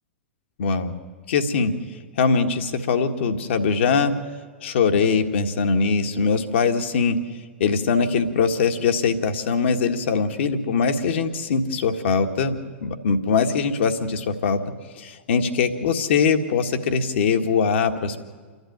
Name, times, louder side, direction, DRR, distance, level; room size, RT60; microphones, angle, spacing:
voice 1, 0.6-0.9 1.3-1.7 2.2-4.1 4.6-7.2 7.6-14.6 15.0-18.2, left 5 dB, 65° left, 5 dB, 1.8 m, -22 dB
28.0 x 12.0 x 9.4 m, 1.5 s
figure-of-eight pair, 100°, 7 cm